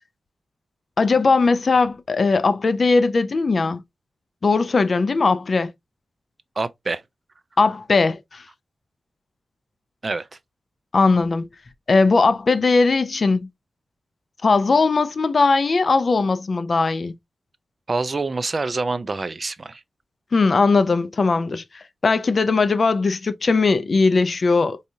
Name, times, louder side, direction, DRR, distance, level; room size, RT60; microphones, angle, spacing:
voice 1, 1.0-3.8 4.4-5.7 7.6-8.4 10.9-11.5 11.9-13.5 14.4-17.1 20.3-24.8, left 4 dB, 45° left, 0.4 m, -19 dB
voice 2, 6.6-7.0 10.0-10.3 17.9-19.8, right 3 dB, 35° right, 0.4 m, -26 dB
4.7 x 2.7 x 2.6 m
wide cardioid pair, 145°, 0 cm